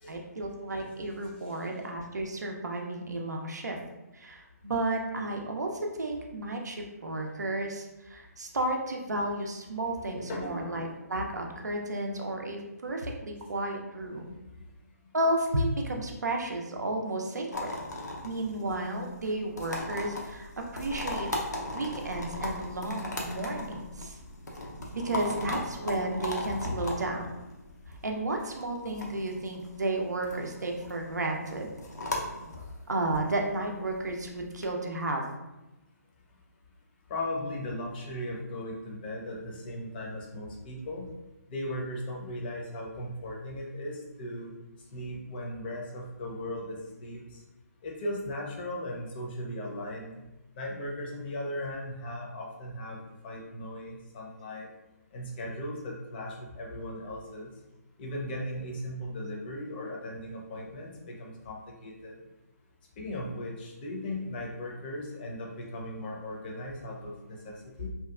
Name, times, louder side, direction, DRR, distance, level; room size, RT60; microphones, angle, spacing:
voice 1, 0.1-3.8 4.1-14.4 15.1-17.7 18.2-21.3 21.7-24.2 24.9-27.3 28.0-31.7 32.9-35.2, right 1 dB, 85° right, 2 dB, 0.4 m, -32 dB
voice 2, 10.1-10.8 14.5-14.6 37.1-41.1 41.5-44.5 44.9-47.4 47.8-50.1 50.5-54.7 55.1-57.5 58.0-62.2 63.0-67.9, left 1 dB, 35° left, -2 dB, 0.6 m, -37 dB
sound 1, 17.5-34.7, left 1 dB, 85° left, 0.6 m, -38 dB
2.8 x 2.2 x 2.3 m, 1.0 s
hypercardioid pair, 145°, 9 cm